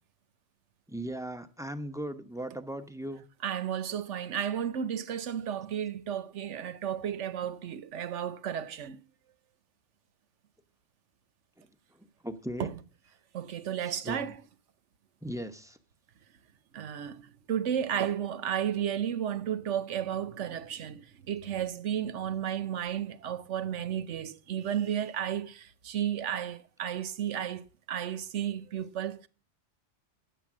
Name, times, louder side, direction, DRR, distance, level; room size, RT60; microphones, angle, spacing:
voice 1, 0.9-3.2 12.2-12.7 14.0-14.3 15.2-15.8, right 1 dB, 5° right, 0.8 m, -37 dB
voice 2, 3.4-9.0 12.6-12.8 13.3-14.4 16.7-29.3, right 9 dB, 80° right, 1.1 m, -33 dB
10.5 x 7.7 x 7.3 m
omnidirectional pair, 1.2 m